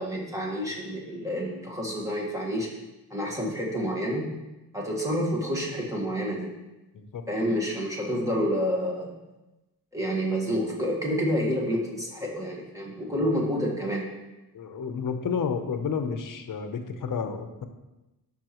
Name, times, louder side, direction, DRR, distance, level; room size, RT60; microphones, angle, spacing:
voice 1, 0.0-2.7 3.1-4.3 4.7-6.5 7.3-9.2 9.9-14.1, equal, 10° right, -2 dB, 1.5 m, -28 dB
voice 2, 6.9-7.2 14.5-17.6, left 6 dB, 60° left, 7 dB, 0.8 m, -31 dB
12.5 x 5.5 x 3.1 m, 1.0 s
wide cardioid pair, 170°, 37 cm